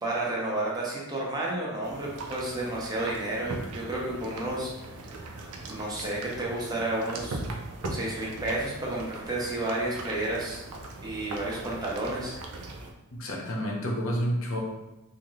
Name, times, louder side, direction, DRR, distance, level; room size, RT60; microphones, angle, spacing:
voice 1, 0.0-4.7 5.6-7.4 7.9-10.6 11.0-12.3, right 1 dB, 20° right, -5 dB, 0.6 m, -31 dB
sound 1, 1.8-12.9, right 2 dB, 85° right, 0.5 m, -39 dB
voice 2, 13.1-14.6, equal, 60° left, 0 dB, 0.7 m, -29 dB
3.5 x 2.5 x 3.0 m, 0.99 s
head